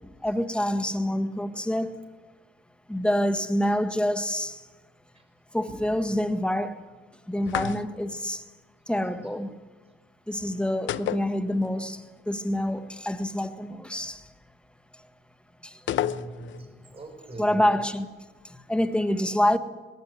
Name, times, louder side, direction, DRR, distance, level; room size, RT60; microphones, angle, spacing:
voice 1, 0.0-2.0 2.9-4.6 5.5-6.8 7.3-8.4 8.9-9.5 10.3-14.3 15.6-15.8 17.4-18.0 18.4-19.6, left 1 dB, 5° left, 1.7 m, -27 dB
sound 1, 7.5-8.2 10.9-11.9 12.2-12.3 15.9-16.7, left 11 dB, 70° left, 0.8 m, -31 dB
voice 2, 15.9-17.8, right 2 dB, 30° right, 6.2 m, -42 dB
20.0 x 17.5 x 9.7 m
cardioid pair, 90°, 20 cm